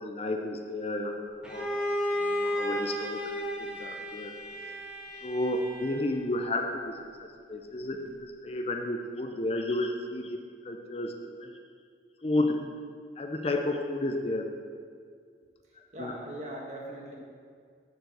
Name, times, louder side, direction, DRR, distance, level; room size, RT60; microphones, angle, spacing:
voice 1, 0.0-1.7 2.1-4.3 5.2-11.1 11.4-11.6 12.2-12.6 13.2-14.5 16.0-16.1, left 1 dB, 35° left, 4 dB, 0.6 m, -32 dB
Bowed string instrument, 1.4-6.3, equal, 5° right, 1.2 m, -33 dB
voice 2, 15.9-17.2, right 1 dB, 40° right, -2 dB, 1.6 m, -40 dB
6.8 x 6.8 x 7.7 m, 2.1 s
head